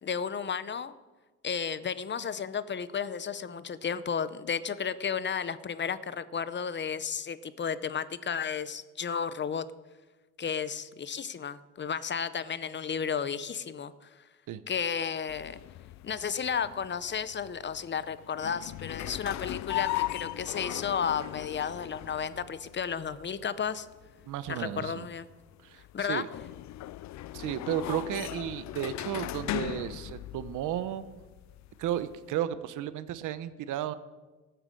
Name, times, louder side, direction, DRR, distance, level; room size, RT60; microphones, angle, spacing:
voice 1, 0.0-0.9 1.4-9.7 10.4-14.2 14.7-15.6 16.0-23.9 24.5-25.3 25.9-26.2, left 7 dB, 40° left, 15 dB, 0.8 m, -33 dB
sound 1, 15.3-32.4, left 15 dB, 65° left, 0.4 m, -39 dB
voice 2, 24.3-25.1 25.6-26.3 27.3-31.0 31.8-33.9, right 11 dB, 85° right, 14 dB, 0.8 m, -33 dB
14.0 x 7.9 x 7.7 m, 1.2 s
cardioid pair, 90°, 30 cm